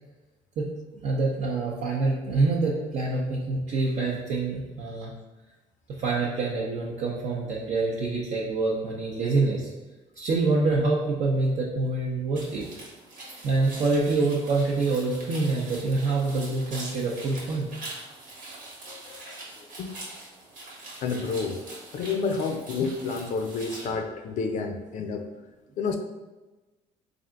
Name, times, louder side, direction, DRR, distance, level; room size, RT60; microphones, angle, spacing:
voice 1, 0.9-5.1 5.9-9.7 10.2-12.7 13.4-17.7, right 3 dB, 55° right, -4 dB, 0.6 m, -26 dB
sound 1, 12.4-23.9, right 2 dB, 80° right, 1.2 m, -43 dB
voice 2, 18.8-20.0 21.0-21.6 21.9-25.2 25.8-26.0, left 4 dB, 60° left, 5 dB, 0.5 m, -30 dB
3.4 x 2.5 x 3.7 m, 1.2 s
cardioid pair, 90°, 14 cm